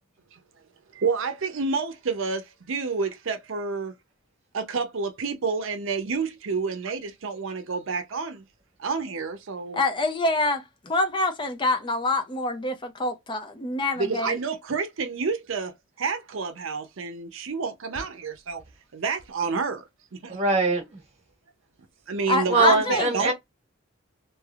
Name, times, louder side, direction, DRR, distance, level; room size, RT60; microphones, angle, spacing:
voice 1, 0.9-3.9 4.5-8.5 8.8-9.8 14.0-18.6 18.9-19.8 20.1-20.4 22.1-23.3, right 4 dB, 70° right, 0.6 m, -29 dB
voice 2, 9.7-14.4 22.3-23.1, left 2 dB, 25° left, 0.5 m, -26 dB
voice 3, 20.3-21.0 22.5-23.3, right 3 dB, 30° right, 1.4 m, -22 dB
3.3 x 2.6 x 2.3 m
head